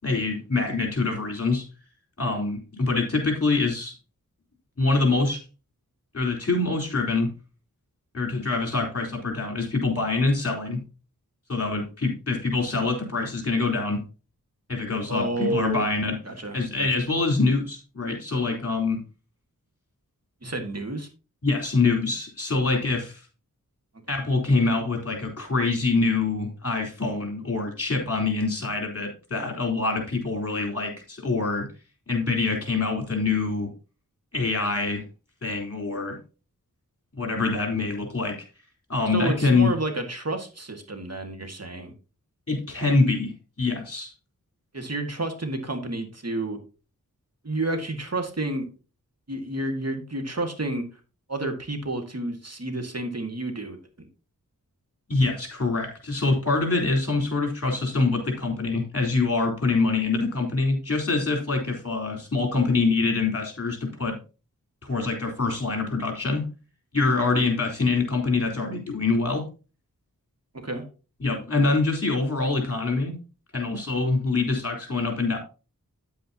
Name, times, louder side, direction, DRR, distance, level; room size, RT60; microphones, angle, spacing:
voice 1, 0.0-1.6 2.2-4.0 4.8-5.4 6.1-7.3 8.1-10.8 11.5-14.0 14.7-16.2 16.5-19.0 21.4-23.2 24.1-31.7 32.1-33.7 34.3-35.0 35.4-36.2 37.1-38.4 38.9-39.7 42.5-43.3 43.6-44.1 55.1-64.2 64.8-66.4 66.9-69.4 71.2-73.1 73.5-75.4, left 3 dB, 45° left, 3 dB, 3.9 m, -25 dB
voice 2, 15.1-15.9 16.3-16.9 20.4-21.1 39.1-41.9 44.7-46.6 47.4-48.7 49.3-50.9 51.3-53.8 70.5-70.8, right 2 dB, 45° right, 5 dB, 1.9 m, -30 dB
9.9 x 8.4 x 2.9 m, 0.32 s
wide cardioid pair, 65°, 34 cm